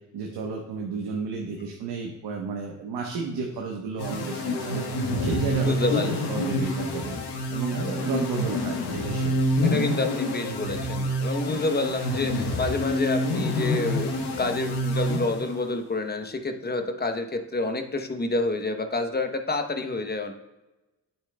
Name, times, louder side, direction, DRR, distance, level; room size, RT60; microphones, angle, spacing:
voice 1, 0.1-4.9 5.2-7.2 7.5-9.3, right 4 dB, 80° right, 1 dB, 1.0 m, -32 dB
sound 1, 4.0-15.8, left 1 dB, 80° left, 1.3 m, -27 dB
voice 2, 5.6-6.1 9.6-14.1 14.4-20.3, left 2 dB, 25° left, 6 dB, 0.9 m, -28 dB
8.9 x 8.3 x 2.2 m, 1.0 s
cardioid pair, 65°, 38 cm